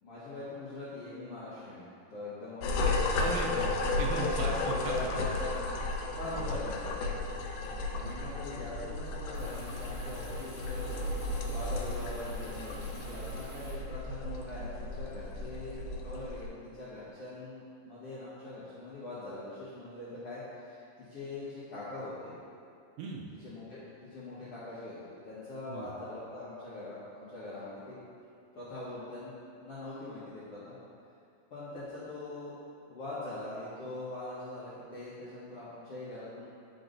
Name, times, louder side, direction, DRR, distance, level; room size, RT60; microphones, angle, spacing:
voice 1, 0.0-3.0 4.3-5.5 6.2-7.0 7.9-10.9 11.5-20.8 21.1-22.4 23.4-24.9 25.2-28.0 28.5-30.7 31.5-32.6 32.9-36.5, left 2 dB, 65° left, -12 dB, 1.5 m, -42 dB
sound 1, 2.6-16.5, left 2 dB, 90° left, 1.8 m, -34 dB
voice 2, 3.2-5.1 6.2-6.6 7.7-8.2 23.0-23.2 25.7-25.9, right 4 dB, 80° right, -1 dB, 2.2 m, -39 dB
sound 2, 9.3-13.7, equal, 60° right, 2.5 m, -48 dB
10.0 x 5.1 x 2.6 m, 2.4 s
omnidirectional pair, 4.3 m